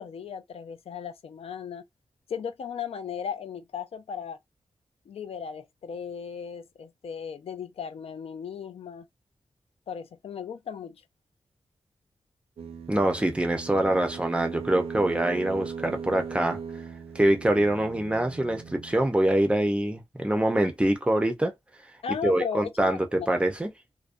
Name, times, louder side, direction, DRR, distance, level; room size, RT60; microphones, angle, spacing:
voice 1, 0.0-1.8 2.3-4.4 5.1-9.1 9.9-11.0 22.0-23.3, left 7 dB, 70° left, 0.4 m, -36 dB
sound 1, 12.6-19.1, right 6 dB, 70° right, 0.5 m, -39 dB
voice 2, 12.9-16.6 17.1-21.5 22.2-23.7, right 1 dB, 10° right, 0.4 m, -24 dB
2.4 x 2.1 x 2.5 m
wide cardioid pair, 150°, 10 cm